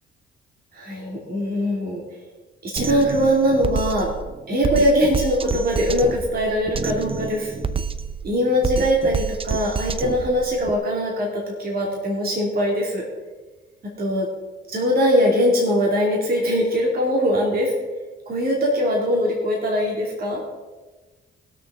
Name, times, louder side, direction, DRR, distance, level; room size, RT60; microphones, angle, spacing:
voice 1, 0.7-2.0 2.6-4.1 4.5-7.5 8.2-13.0 14.0-14.3 14.7-17.7 18.3-20.4, equal, 50° right, -2 dB, 2.6 m, -21 dB
Drum kit, 2.8-10.7, right 5 dB, 25° right, 0.6 m, -28 dB
20.0 x 6.8 x 3.7 m, 1.2 s
cardioid pair, 90°, 20 cm